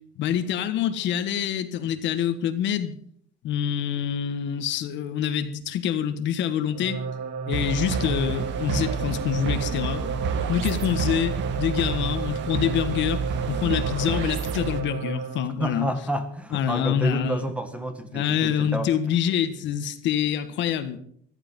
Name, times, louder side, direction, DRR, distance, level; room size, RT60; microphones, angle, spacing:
voice 1, 0.2-3.0 3.4-7.0 7.5-10.0 10.5-13.2 13.5-15.9 16.5-17.5 18.1-21.0, left 9 dB, 65° left, 10 dB, 1.5 m, -26 dB
sound 1, 6.7-15.5, right 5 dB, 80° right, 2.7 m, -32 dB
sound 2, 7.5-14.8, right 5 dB, 60° right, 1.9 m, -30 dB
voice 2, 15.6-18.9, right 1 dB, 5° right, 8 dB, 1.6 m, -29 dB
14.5 x 13.5 x 5.3 m, 0.64 s
cardioid pair, 145°, 21 cm